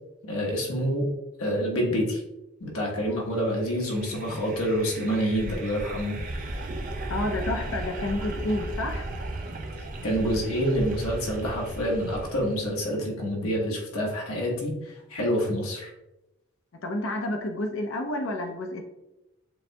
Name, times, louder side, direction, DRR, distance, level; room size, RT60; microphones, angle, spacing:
voice 1, 0.3-1.1 1.4-2.2 2.6-6.1 10.0-15.9, equal, 80° left, -2 dB, 1.1 m, -27 dB
sound 1, 3.6-12.8, right 1 dB, 40° right, 0.5 m, -36 dB
voice 2, 7.1-9.0 16.8-18.8, left 1 dB, 60° left, 3 dB, 0.5 m, -30 dB
6.8 x 2.7 x 2.2 m, 0.95 s
head